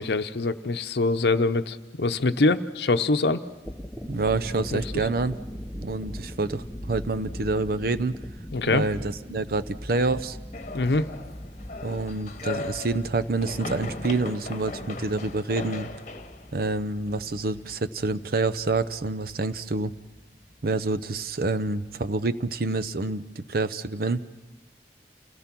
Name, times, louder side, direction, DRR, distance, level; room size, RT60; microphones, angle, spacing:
voice 1, 0.0-3.4 4.7-4.8 8.5-8.9 10.7-11.1, left 3 dB, 70° left, 10 dB, 0.8 m, -24 dB
sound 1, 3.6-23.1, equal, ahead, 0.8 m, -42 dB
voice 2, 4.1-5.4 5.8-8.2 8.7-10.4 11.8-15.9 16.5-19.9 20.6-24.2, right 3 dB, 55° right, 11 dB, 0.6 m, -27 dB
sound 2, 10.5-17.6, left 2 dB, 40° left, 1.2 m, -38 dB
28.5 x 17.5 x 6.0 m, 1.1 s
head